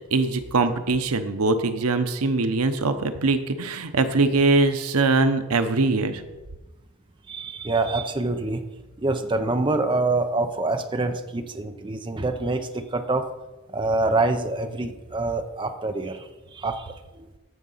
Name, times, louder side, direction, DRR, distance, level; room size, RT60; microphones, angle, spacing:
voice 1, 0.1-6.2, right 3 dB, 90° right, 9 dB, 0.8 m, -22 dB
voice 2, 7.3-8.6 9.0-13.3 13.7-16.3 16.5-17.3, right 2 dB, 20° right, 7 dB, 0.6 m, -26 dB
14.0 x 5.0 x 5.6 m, 1.1 s
head